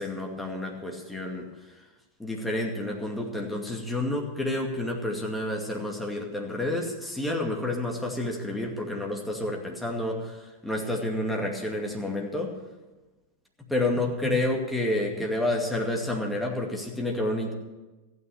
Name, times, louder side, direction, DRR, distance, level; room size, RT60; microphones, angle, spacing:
voice 1, 0.0-1.5 2.2-12.5 13.7-17.5, left 1 dB, 5° left, 0 dB, 2.3 m, -29 dB
15.0 x 9.3 x 7.1 m, 1.1 s
figure-of-eight pair, 90°, 0 cm